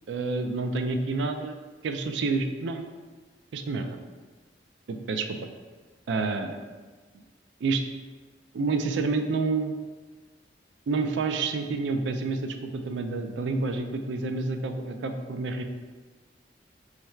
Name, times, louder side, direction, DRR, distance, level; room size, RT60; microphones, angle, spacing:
voice 1, 0.1-1.6 1.8-2.9 3.5-4.0 4.9-5.4 6.1-6.6 7.6-7.8 8.5-9.7 10.9-15.6, right 3 dB, 85° right, 6 dB, 0.4 m, -28 dB
3.2 x 2.3 x 4.3 m, 1.4 s
head